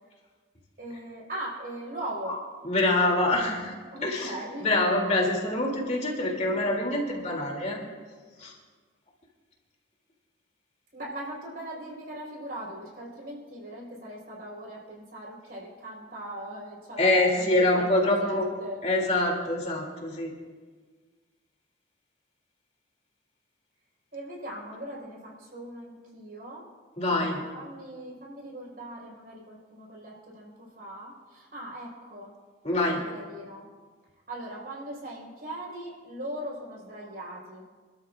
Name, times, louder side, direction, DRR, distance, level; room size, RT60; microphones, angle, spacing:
voice 1, 0.8-2.4 3.9-4.7 8.4-8.5 10.9-18.8 20.1-20.2 24.1-26.6 27.0-32.3 32.9-33.7 34.3-37.6, right 1 dB, 50° right, -4 dB, 4.7 m, -40 dB
voice 2, 2.6-3.7 4.0-7.8 8.4-8.5 17.0-18.5 18.8-20.3 27.0-27.4 32.6-33.0, left 2 dB, 35° left, -1 dB, 2.8 m, -25 dB
27.5 x 13.0 x 2.5 m, 1.5 s
head